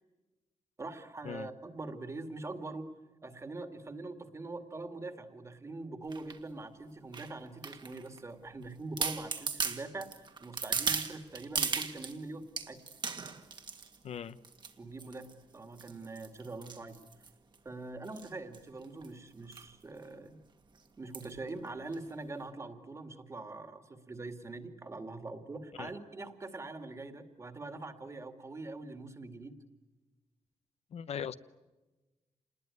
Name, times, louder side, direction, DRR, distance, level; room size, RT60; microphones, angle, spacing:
voice 1, 0.8-2.9 3.2-10.1 10.4-12.8 14.8-17.0 17.6-20.4 21.0-29.5, right 2 dB, 25° right, 8 dB, 2.2 m, -43 dB
sound 1, 6.1-6.4 7.1-8.2 8.6-8.7 9.0-12.2 12.6-14.0 14.4-14.7 15.0-15.3 15.8-17.6 18.1-18.3 18.5-18.6 18.8-19.1 19.5-19.7 20.0-20.1 21.1-21.4 21.9-22.0, right 5 dB, 45° right, 1.9 m, -36 dB
voice 2, 14.0-14.4 25.8-25.9 30.9-31.3, left 8 dB, 70° left, 13 dB, 0.9 m, -39 dB
28.5 x 20.5 x 9.6 m, 1.2 s
wide cardioid pair, 160°, 11 cm